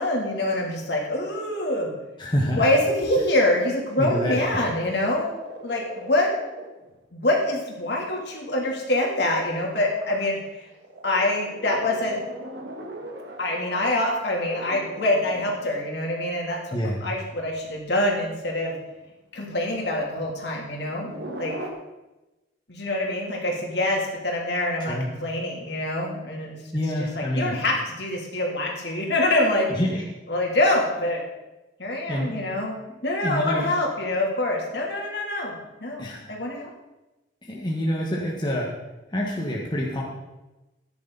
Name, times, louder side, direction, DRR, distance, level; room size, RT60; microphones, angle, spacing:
voice 1, 0.0-1.9 2.5-5.4 5.6-6.3 7.1-10.4 11.0-12.2 13.4-16.6 17.0-18.7 19.3-21.1 21.4-21.5 22.7-26.6 27.2-29.7 30.3-31.2 31.8-32.7 33.0-36.7, left 1 dB, 65° left, -1 dB, 3.2 m, -25 dB
voice 2, 2.2-2.7 4.0-4.6 16.7-17.0 24.8-25.1 26.7-27.5 29.8-30.0 32.1-32.3 33.2-33.7 36.0-36.3 37.4-38.7 39.1-40.0, equal, 25° left, -2 dB, 1.6 m, -27 dB
sound 1, 4.3-6.9 7.7-7.8 8.0-8.2 8.5-15.9 17.6-17.7 18.6-18.9 20.1-21.7, right 1 dB, 70° right, 1.9 m, -40 dB
14.5 x 10.5 x 4.1 m, 1.0 s
head